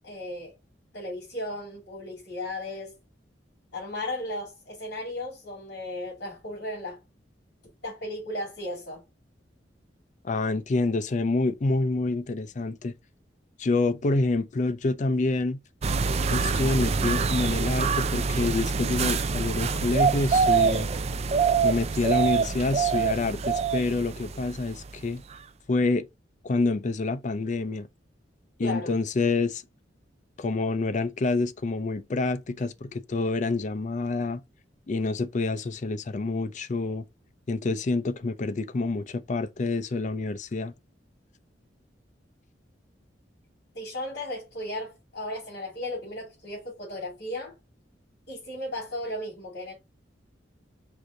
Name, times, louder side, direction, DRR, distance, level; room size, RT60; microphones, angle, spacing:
voice 1, 0.0-0.5 0.9-2.9 3.7-7.0 7.8-9.0 28.6-28.9 43.7-47.5 48.3-49.7, left 1 dB, 65° left, 2.8 m, -35 dB
voice 2, 10.2-12.9 13.6-15.6 16.3-20.9 21.6-25.2 25.7-26.0 26.4-27.9 28.6-29.6 30.4-34.4 34.9-37.0 37.5-40.7, left 3 dB, 45° left, 0.5 m, -27 dB
sound 1, 15.8-25.1 25.3-25.4, right 5 dB, 35° right, 0.4 m, -25 dB
4.7 x 2.6 x 3.7 m
head